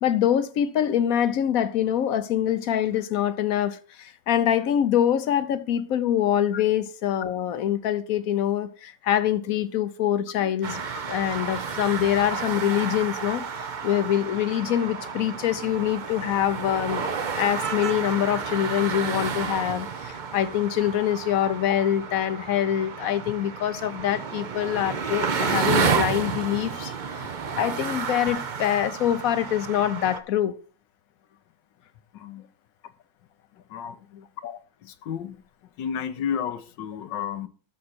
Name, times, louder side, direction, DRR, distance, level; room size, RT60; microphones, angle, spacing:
voice 1, 0.0-10.8 11.1-17.1 17.3-27.3 27.6-30.5 34.1-34.6, left 10 dB, 65° left, 0.9 m, -25 dB
sound 1, 10.6-30.2, right 6 dB, 75° right, 0.4 m, -31 dB
voice 2, 32.1-32.5 33.7-34.0 34.8-35.4 35.8-37.5, left 8 dB, 80° left, 1.5 m, -32 dB
12.5 x 6.4 x 4.3 m
omnidirectional pair, 1.9 m